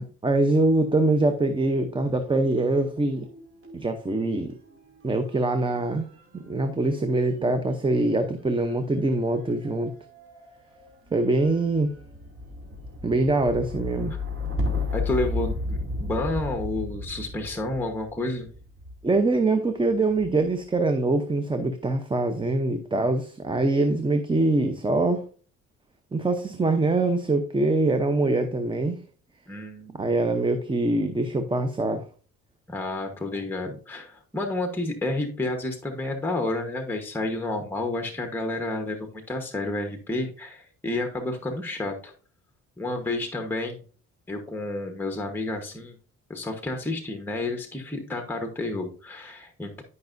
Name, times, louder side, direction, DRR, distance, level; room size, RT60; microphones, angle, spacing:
voice 1, 0.0-3.3 3.7-4.5 5.0-6.0 6.3-9.9 11.1-11.9 13.0-14.1 19.0-25.2 26.1-29.0 30.0-32.1 33.7-33.8, right 2 dB, 15° right, 8 dB, 0.7 m, -24 dB
sound 1, 2.5-19.1 19.9-20.5, left 2 dB, 45° right, 2.6 m, -35 dB
voice 2, 14.9-18.5 29.5-30.0 32.7-42.1 42.8-43.8 44.3-45.9 46.3-49.8, left 2 dB, 5° left, 4 dB, 1.1 m, -30 dB
11.5 x 5.4 x 2.6 m, 0.40 s
cardioid pair, 90°, 30 cm